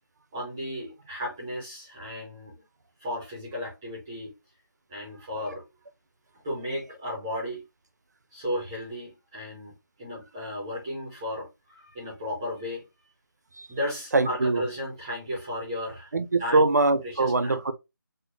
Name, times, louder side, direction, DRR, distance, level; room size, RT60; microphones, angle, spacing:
voice 1, 0.3-2.6 3.0-4.3 4.9-5.6 6.4-7.6 8.3-12.9 13.7-16.1 16.4-16.7 17.0-17.6, left 1 dB, 10° right, 0.5 m, -34 dB
voice 2, 14.1-14.6 16.1-17.7, right 3 dB, 55° right, 0.6 m, -23 dB
4.3 x 2.1 x 3.1 m
figure-of-eight pair, 170°, 11 cm